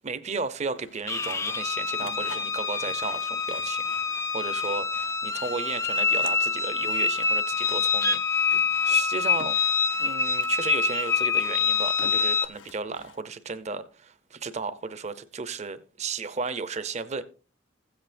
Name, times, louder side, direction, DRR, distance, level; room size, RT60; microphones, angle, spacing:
voice 1, 0.0-4.8 5.2-9.6 10.0-17.2, right 4 dB, 35° right, 0.7 m, -34 dB
Sawing, 0.7-13.2, left 4 dB, 75° left, 0.7 m, -48 dB
sound 1, 1.1-12.5, left 5 dB, 15° left, 0.4 m, -26 dB
16.0 x 7.9 x 2.6 m
head